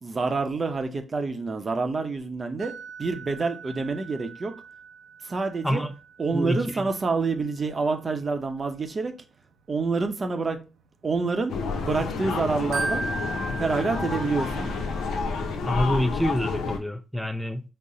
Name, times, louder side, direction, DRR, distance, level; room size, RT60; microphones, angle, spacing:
voice 1, 0.0-2.7 3.0-4.5 5.2-5.8 6.2-9.1 9.7-10.6 11.0-13.1 13.6-14.7, right 4 dB, 40° right, 0.6 m, -27 dB
sound 1, 2.6-12.0 12.4-15.2, right 3 dB, 80° right, 0.5 m, -38 dB
voice 2, 5.6-5.9 6.3-6.9 15.7-17.6, equal, 5° left, 0.4 m, -26 dB
sound 2, 11.5-16.8, left 4 dB, 80° left, 0.6 m, -29 dB
3.9 x 2.1 x 3.7 m
supercardioid pair, 60°, 0 cm